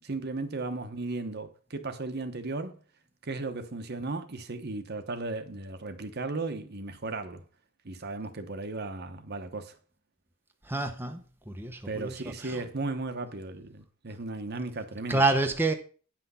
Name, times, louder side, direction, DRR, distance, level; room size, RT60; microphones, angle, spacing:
voice 1, 0.0-2.8 3.2-7.4 7.8-9.8 11.8-15.2, right 3 dB, 50° right, 1.0 m, -35 dB
voice 2, 10.6-11.2 11.5-12.6 15.1-15.7, right 2 dB, 10° right, 0.8 m, -28 dB
9.1 x 6.0 x 5.5 m
head